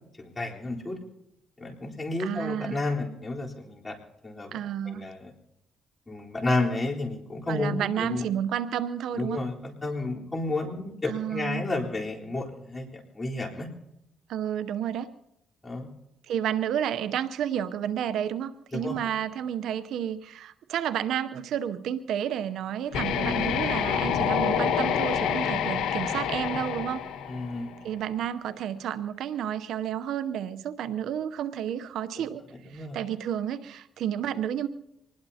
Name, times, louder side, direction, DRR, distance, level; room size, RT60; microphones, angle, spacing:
voice 1, 0.2-1.0 1.6-4.0 4.2-4.6 4.8-5.3 6.1-8.2 9.1-13.7 15.6-15.9 18.8-19.0 27.3-27.7 32.7-33.0, left 2 dB, 25° left, -3 dB, 3.8 m, -31 dB
voice 2, 2.2-2.9 4.5-5.1 7.5-9.4 11.1-11.7 14.3-15.1 16.3-27.0 27.8-32.4 32.7-34.7, right 10 dB, 80° right, 13 dB, 0.7 m, -31 dB
sound 1, 22.9-27.8, left 7 dB, 90° left, 1.5 m, -27 dB
25.0 x 20.0 x 2.8 m, 0.85 s
cardioid pair, 90°, 0 cm